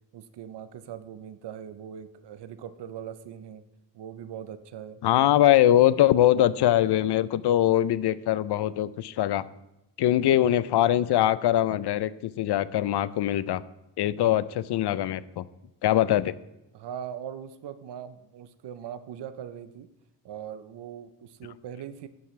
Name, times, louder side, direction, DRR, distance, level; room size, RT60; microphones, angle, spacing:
voice 1, 0.1-3.6 3.9-5.0 16.7-19.9 20.2-22.1, right 9 dB, 70° right, 13 dB, 0.7 m, -40 dB
voice 2, 5.0-9.4 10.0-13.6 14.0-15.4 15.8-16.3, left 12 dB, 70° left, 17 dB, 0.5 m, -22 dB
11.5 x 9.3 x 3.2 m, 0.92 s
wide cardioid pair, 170°, 42 cm